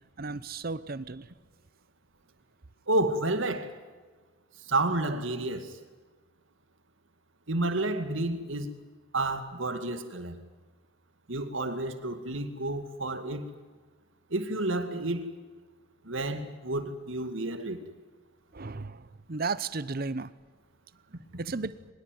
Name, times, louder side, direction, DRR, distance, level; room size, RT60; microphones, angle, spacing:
voice 1, 0.2-1.3 18.5-20.3 21.4-21.8, right 4 dB, 50° right, 0.8 m, -34 dB
voice 2, 2.9-3.7 4.7-5.8 7.5-8.7 9.1-10.4 11.3-13.5 14.3-15.3 16.1-17.8, right 2 dB, 75° right, 2.3 m, -30 dB
23.5 x 21.5 x 9.3 m
head